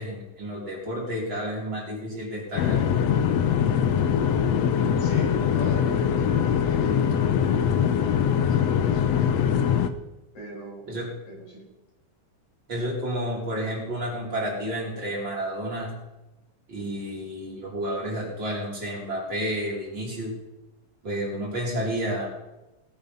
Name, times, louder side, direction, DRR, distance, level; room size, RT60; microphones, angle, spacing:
voice 1, 0.0-2.8 10.9-11.1 12.7-15.9 16.7-20.3 21.0-22.3, equal, 35° right, -4 dB, 4.9 m, -30 dB
sound 1, 2.6-9.9, left 8 dB, 75° left, 1.6 m, -22 dB
voice 2, 5.0-7.0 7.8-9.5 10.3-10.9 11.3-11.6, right 1 dB, 55° left, -4 dB, 8.7 m, -41 dB
19.5 x 8.8 x 5.6 m, 0.96 s
omnidirectional pair, 3.8 m